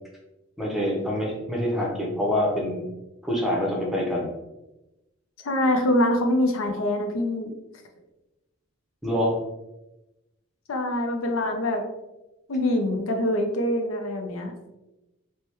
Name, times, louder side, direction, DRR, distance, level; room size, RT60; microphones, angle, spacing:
voice 1, 0.6-2.9 3.2-4.3 9.0-9.4, left 1 dB, ahead, -2 dB, 0.6 m, -26 dB
voice 2, 5.4-7.5 10.7-11.8 12.5-14.5, left 1 dB, 75° left, 4 dB, 0.5 m, -24 dB
3.3 x 2.1 x 2.9 m, 0.98 s
head